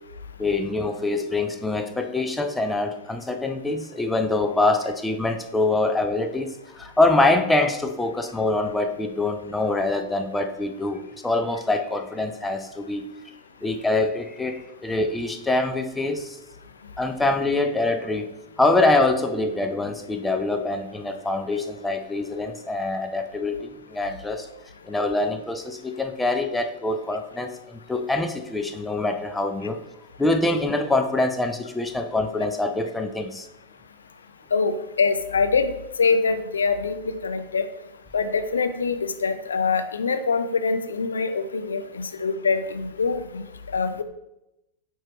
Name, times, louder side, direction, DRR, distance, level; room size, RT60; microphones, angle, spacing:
voice 1, 0.4-13.1 13.6-16.4 17.0-18.3 18.6-24.5 24.8-29.8 30.2-33.5, left 2 dB, 10° left, 6 dB, 0.7 m, -24 dB
voice 2, 34.5-37.6 38.1-43.4 43.7-44.0, left 4 dB, 70° left, 10 dB, 0.5 m, -24 dB
8.9 x 4.7 x 3.0 m, 0.90 s
figure-of-eight pair, 90°, 0 cm